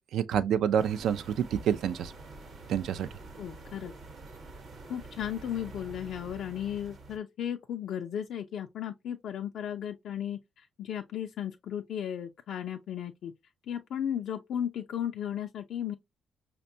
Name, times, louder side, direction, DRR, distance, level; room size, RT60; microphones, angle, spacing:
voice 1, 0.1-2.1 2.7-3.1, right 9 dB, 75° right, 0.3 m, -28 dB
sound 1, 0.8-7.2, right 3 dB, 55° right, 0.9 m, -47 dB
voice 2, 3.4-3.9 4.8-13.3 13.7-16.0, left 9 dB, 70° left, 0.4 m, -35 dB
5.1 x 2.1 x 2.6 m
cardioid pair, 90°, 0 cm